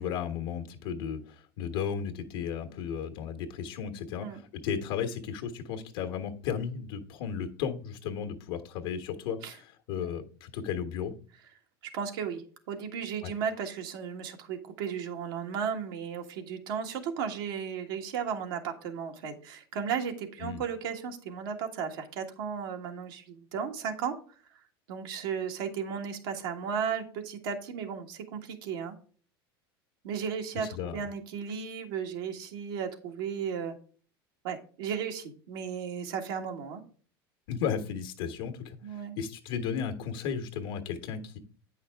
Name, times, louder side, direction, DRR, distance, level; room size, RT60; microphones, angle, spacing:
voice 1, 0.0-11.1 13.2-13.3 20.4-20.6 30.5-31.1 37.5-41.4, left 7 dB, 70° left, 5 dB, 1.3 m, -34 dB
voice 2, 11.9-24.1 24.9-28.9 30.0-30.7 30.9-33.7 34.4-36.8 38.8-39.2, right 7 dB, 70° right, 4 dB, 1.7 m, -35 dB
8.8 x 5.7 x 3.5 m, 0.42 s
hypercardioid pair, 90°, 13 cm